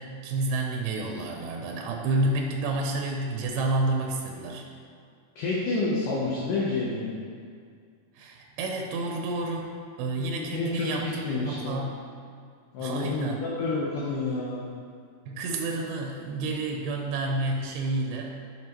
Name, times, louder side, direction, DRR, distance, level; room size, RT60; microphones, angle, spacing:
voice 1, 0.0-4.6 8.2-9.7 10.0-12.0 12.8-13.4 15.3-18.3, right 2 dB, 85° right, 1 dB, 2.6 m, -30 dB
voice 2, 5.4-7.1 10.4-11.8 12.7-14.6, left 3 dB, 70° left, -5 dB, 2.3 m, -29 dB
11.0 x 6.0 x 3.0 m, 2.2 s
omnidirectional pair, 4.4 m